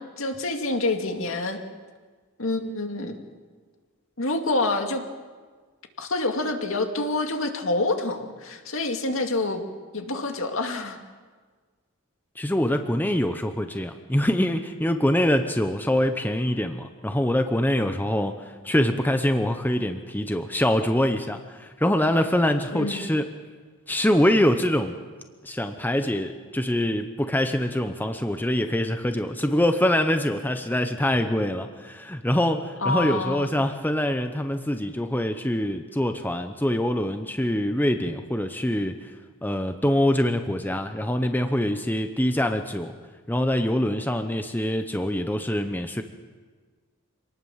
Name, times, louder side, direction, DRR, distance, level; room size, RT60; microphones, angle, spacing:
voice 1, 0.0-1.6 2.4-3.2 4.2-5.0 6.0-9.6 9.9-11.0 22.7-23.1 32.8-33.5, left 2 dB, 65° left, 5 dB, 2.3 m, -27 dB
voice 2, 12.4-23.3 23.9-25.0 25.4-39.1 39.4-42.9 43.3-46.0, left 1 dB, 10° left, 7 dB, 0.9 m, -24 dB
26.0 x 19.0 x 7.3 m, 1.5 s
head